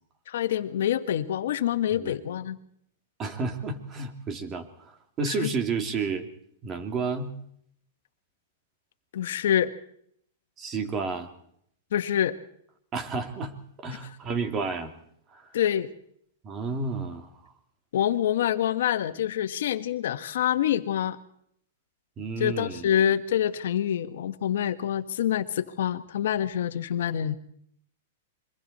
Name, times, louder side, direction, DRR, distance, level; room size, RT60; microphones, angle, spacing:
voice 1, 0.3-2.6 5.3-5.5 9.1-9.7 11.9-12.3 15.5-15.9 17.9-21.2 22.4-27.4, left 10 dB, 75° left, 10 dB, 1.6 m, -26 dB
voice 2, 3.2-6.3 6.6-7.3 10.6-11.3 12.9-13.5 13.8-14.9 15.3-15.5 16.4-17.5 22.2-22.9, right 4 dB, 25° right, 6 dB, 2.8 m, -31 dB
27.0 x 23.5 x 4.3 m, 0.69 s
hypercardioid pair, 140°, 0 cm